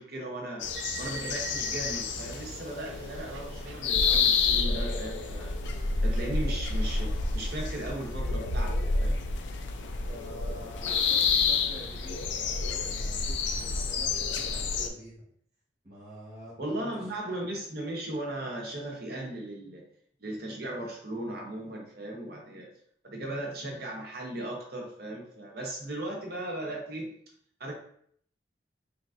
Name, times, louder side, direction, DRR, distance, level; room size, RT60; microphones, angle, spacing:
voice 1, 0.0-5.5 6.0-9.2 16.6-19.8 20.2-22.7 23.0-27.1 27.6-27.8, right 1 dB, 55° right, -1 dB, 0.9 m, -37 dB
sound 1, 0.6-14.9, left 4 dB, 75° left, 0.4 m, -29 dB
sound 2, 0.8-4.7 4.9-6.8, right 8 dB, 90° right, 0.4 m, -46 dB
voice 2, 10.0-15.2 15.8-17.0, right 1 dB, 35° right, -7 dB, 1.5 m, -47 dB
3.8 x 3.4 x 2.4 m, 0.63 s
head